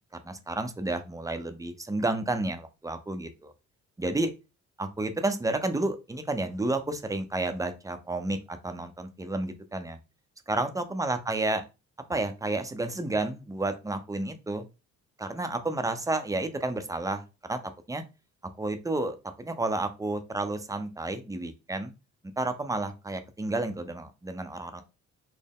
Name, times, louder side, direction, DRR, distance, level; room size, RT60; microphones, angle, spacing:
voice 1, 0.2-3.5 4.0-4.3 4.8-10.0 10.5-11.6 12.1-14.7 15.2-17.6 17.9-18.0 18.6-21.9 22.4-24.8, right 2 dB, 10° right, 8 dB, 0.6 m, -31 dB
4.3 x 2.1 x 3.6 m, 0.28 s
cardioid pair, 90°, 30 cm